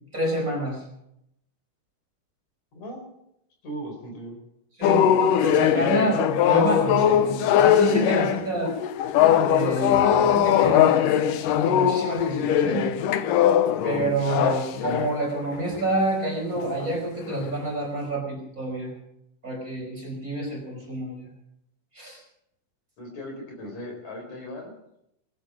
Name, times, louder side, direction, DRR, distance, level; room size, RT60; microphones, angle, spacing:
voice 1, 0.1-0.8 4.8-8.7 9.4-11.2 11.6-12.8 13.8-18.9 19.4-21.3 21.9-22.2, right 2 dB, 25° right, -1 dB, 5.4 m, -28 dB
voice 2, 2.7-3.0 3.6-4.4 23.0-24.7, equal, 55° left, 1 dB, 5.3 m, -37 dB
sound 1, 4.8-15.2 15.7-16.0 16.6-16.9 17.3-17.5, left 10 dB, 80° left, 2.5 m, -21 dB
20.5 x 10.5 x 6.2 m, 0.79 s
omnidirectional pair, 3.8 m